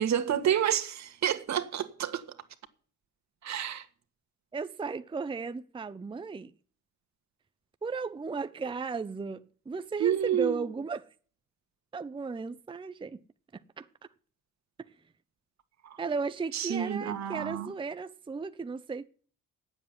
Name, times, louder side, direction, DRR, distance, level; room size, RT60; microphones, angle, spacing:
voice 1, 0.0-2.2 3.4-3.8 10.0-10.7 16.5-17.7, right 9 dB, 65° right, 1.6 m, -29 dB
voice 2, 4.5-6.5 7.8-11.1 11.9-13.2 13.5-13.9 16.0-19.1, right 4 dB, 15° right, 0.6 m, -35 dB
9.3 x 7.8 x 8.9 m
cardioid pair, 90°, 30 cm